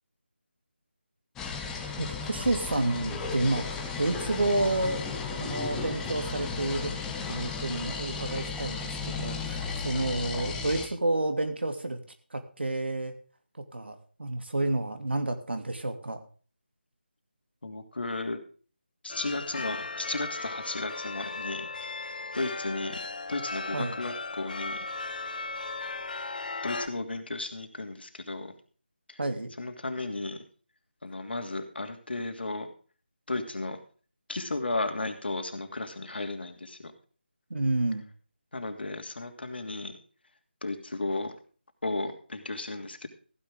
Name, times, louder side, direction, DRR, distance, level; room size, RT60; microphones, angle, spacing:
sound 1, 1.4-10.9, left 5 dB, 5° left, 1.3 m, -34 dB
voice 1, 2.0-5.1 5.4-6.9 7.3-12.0 12.3-13.1 13.7-16.2 23.7-24.0 29.2-29.5 37.5-38.0, right 2 dB, 75° right, 6 dB, 2.8 m, -30 dB
voice 2, 17.6-18.4 19.0-21.9 22.3-23.0 23.3-24.9 26.6-28.5 29.1-29.2 29.6-30.4 31.0-32.7 33.3-33.8 34.3-36.9 38.5-39.9 40.6-41.3 41.8-43.1, left 2 dB, 65° left, 6 dB, 2.8 m, -34 dB
sound 2, 19.1-26.9, left 3 dB, 50° left, 1.5 m, -36 dB
15.0 x 10.5 x 3.7 m, 0.39 s
figure-of-eight pair, 160°, 6 cm